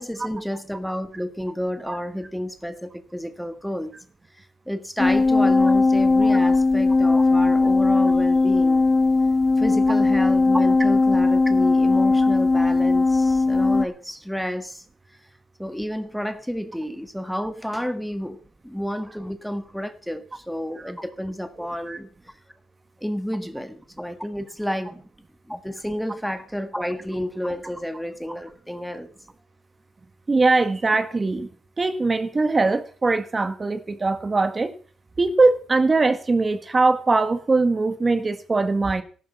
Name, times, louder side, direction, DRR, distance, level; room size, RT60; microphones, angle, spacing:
voice 1, 0.0-3.9 4.7-8.9 9.6-14.8 15.6-18.4 18.6-22.1 23.0-25.0 25.5-29.1, equal, ahead, 9 dB, 1.5 m, -30 dB
sound 1, 5.0-13.9, left 3 dB, 25° left, 1.5 m, -18 dB
voice 2, 21.6-22.0 30.3-31.5 31.8-34.7 35.2-39.0, right 3 dB, 25° right, 10 dB, 1.7 m, -21 dB
14.5 x 12.0 x 5.6 m, 0.41 s
cardioid pair, 90°, 0 cm